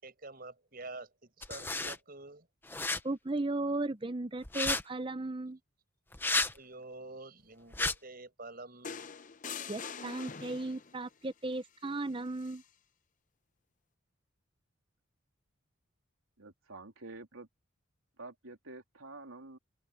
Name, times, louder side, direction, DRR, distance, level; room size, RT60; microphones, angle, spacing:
voice 1, 0.0-2.5 6.5-9.1 9.4-9.6, right 2 dB, 45° right, 6.4 m, -48 dB
sound 1, 1.4-2.0 2.7-3.0 4.4-4.8 6.1-6.5 7.7-7.9, left 3 dB, 10° left, 0.8 m, -31 dB
voice 2, 3.0-5.6 9.7-12.6, right 2 dB, 25° right, 0.7 m, -36 dB
sound 2, 8.8-11.0 12.4-12.6, left 6 dB, 40° left, 0.8 m, -43 dB
voice 3, 16.4-17.5 18.2-19.6, right 2 dB, 90° right, 3.4 m, -48 dB
open air
head